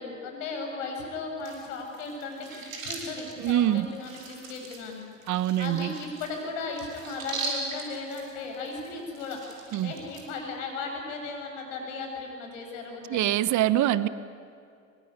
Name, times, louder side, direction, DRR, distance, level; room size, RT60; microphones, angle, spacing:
voice 1, 0.0-2.5 2.8-5.0 5.6-9.4 9.8-13.3, left 3 dB, 70° left, 2 dB, 7.6 m, -36 dB
sound 1, 1.4-10.2, right 3 dB, 85° right, 5.3 m, -40 dB
voice 2, 3.4-3.9 5.3-5.9 9.7-9.9 13.1-14.1, right 13 dB, 45° right, 16 dB, 1.2 m, -24 dB
25.5 x 23.0 x 9.8 m, 2.4 s
hypercardioid pair, 70°, 39 cm